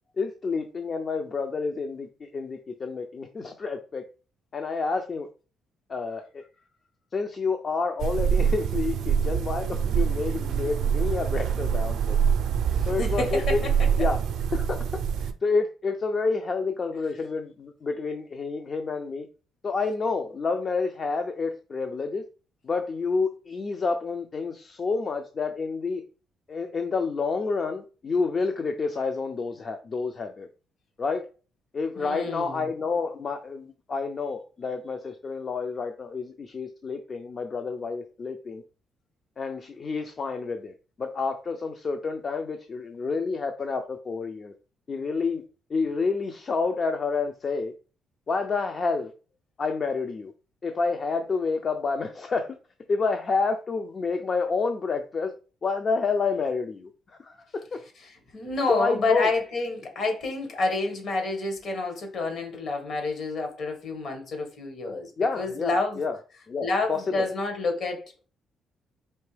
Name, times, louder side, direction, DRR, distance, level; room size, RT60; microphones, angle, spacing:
voice 1, 0.2-4.0 4.5-5.3 5.9-6.4 7.1-12.2 12.9-13.6 14.0-14.2 14.5-19.3 19.6-22.2 22.6-26.0 26.5-30.5 31.0-31.2 31.7-38.6 39.4-44.5 44.9-45.4 45.7-47.7 48.3-49.1 49.6-50.3 50.6-52.6 52.9-55.3 55.6-57.8 58.7-59.3 65.2-66.2 66.5-67.3, left 4 dB, 40° left, 0.5 m, -29 dB
sound 1, 8.0-15.3, right 7 dB, 75° right, 0.4 m, -25 dB
voice 2, 12.7-13.7 32.0-32.7 58.0-66.0 66.6-68.2, left 3 dB, 60° left, 1.4 m, -29 dB
4.4 x 2.9 x 3.2 m
cardioid pair, 90°, 0 cm